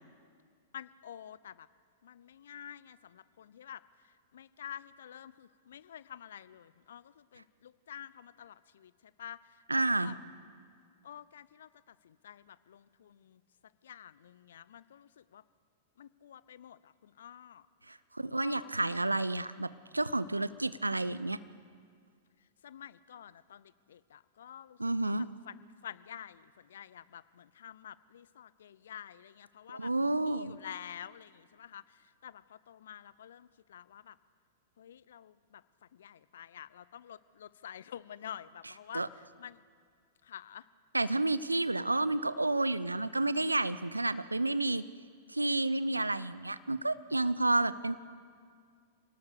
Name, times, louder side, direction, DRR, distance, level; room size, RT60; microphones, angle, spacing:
voice 1, 0.7-1.7 2.0-10.2 11.0-13.4 13.8-15.4 16.0-17.7 18.3-19.0 22.6-25.1 25.5-34.2 34.8-39.6 40.2-40.7, left 9 dB, 60° left, 19 dB, 0.6 m, -49 dB
voice 2, 9.7-10.1 17.9-19.7 19.9-21.4 24.8-25.3 29.7-30.6 38.9-39.1 40.9-44.8 45.3-48.0, right 2 dB, 85° right, 16 dB, 0.7 m, -30 dB
27.0 x 18.5 x 6.8 m, 2.1 s
figure-of-eight pair, 100°, 0 cm